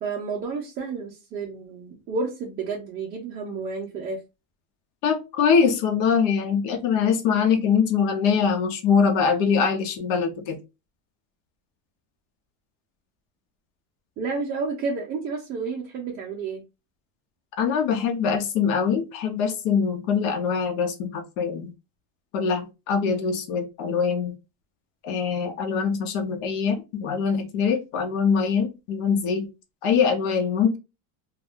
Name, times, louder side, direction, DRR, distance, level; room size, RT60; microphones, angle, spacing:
voice 1, 0.0-4.2 14.2-16.6, right 4 dB, 25° right, -1 dB, 0.4 m, -31 dB
voice 2, 5.0-10.6 17.6-21.7 22.3-24.3 25.0-29.5 29.8-30.8, left 6 dB, 75° left, 6 dB, 0.8 m, -23 dB
2.5 x 2.3 x 3.4 m, 0.26 s
cardioid pair, 175°, 39 cm